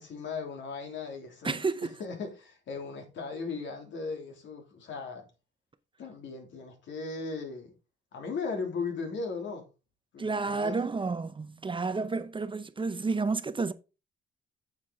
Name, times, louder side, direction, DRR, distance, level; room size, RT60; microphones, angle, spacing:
voice 1, 0.0-5.2 6.0-7.7 8.1-9.7 10.1-10.9, left 4 dB, 70° left, 3.0 m, -37 dB
voice 2, 1.4-1.9 10.2-13.7, right 4 dB, 25° right, 0.7 m, -30 dB
8.6 x 7.4 x 3.9 m
cardioid pair, 90°, 20 cm